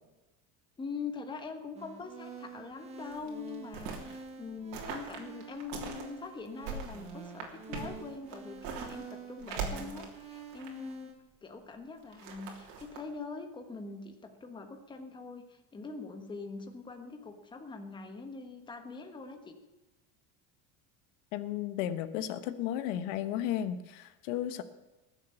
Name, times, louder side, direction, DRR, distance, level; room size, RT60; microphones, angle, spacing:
voice 1, 0.8-11.1 11.4-19.6, left 4 dB, 10° left, 5 dB, 1.3 m, -43 dB
sound 1, 1.8-11.1, right 5 dB, 15° right, 1.5 m, -48 dB
sound 2, 3.0-4.2 4.7-6.1 6.5-9.1 9.4-10.9 12.0-13.0, right 5 dB, 60° right, 3.2 m, -41 dB
voice 2, 21.3-24.6, left 11 dB, 75° left, 11 dB, 1.2 m, -34 dB
20.0 x 7.6 x 7.0 m, 1.1 s
cardioid pair, 175°, 37 cm